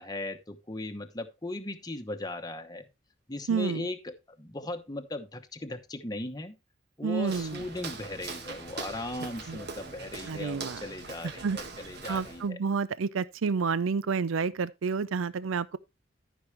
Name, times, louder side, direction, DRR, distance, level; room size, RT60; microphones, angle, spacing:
voice 1, 0.0-2.9 3.3-6.5 7.0-12.6, left 2 dB, 20° left, 1.0 m, -38 dB
voice 2, 3.5-3.9 7.0-7.6 9.5-9.6 10.2-10.8 11.2-11.6 12.1-15.8, right 5 dB, 75° right, 0.5 m, -29 dB
Walk footsteps, 7.2-12.5, right 4 dB, 55° right, 1.7 m, -42 dB
13.5 x 6.2 x 3.2 m
head